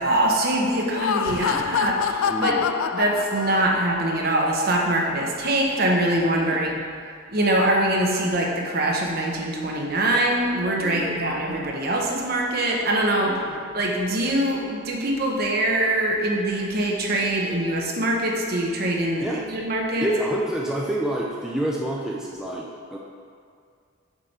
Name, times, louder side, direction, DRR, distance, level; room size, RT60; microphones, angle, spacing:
voice 1, 0.0-2.6 2.9-6.8 7.3-13.3 13.7-20.1, right 1 dB, 50° right, -1 dB, 1.0 m, -23 dB
Laughter, 0.8-4.1, left 7 dB, 85° left, 0.3 m, -26 dB
voice 2, 2.2-2.7 6.4-6.6 10.7-11.2 13.2-13.6 19.2-19.5 20.0-23.0, right 1 dB, 5° right, -4 dB, 0.5 m, -28 dB
7.4 x 5.1 x 4.3 m, 2.2 s
head